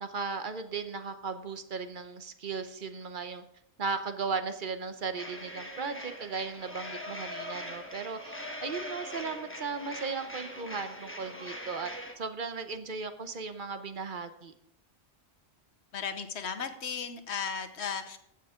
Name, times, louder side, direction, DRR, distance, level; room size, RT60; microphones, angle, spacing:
voice 1, 0.0-3.4 3.8-11.9 12.2-14.5, right 5 dB, 50° right, 9 dB, 1.0 m, -36 dB
sound 1, 5.2-12.1, left 1 dB, 10° left, 1.2 m, -41 dB
voice 2, 15.9-18.2, left 6 dB, 70° left, 7 dB, 1.2 m, -35 dB
15.5 x 7.3 x 3.7 m, 0.74 s
omnidirectional pair, 1.2 m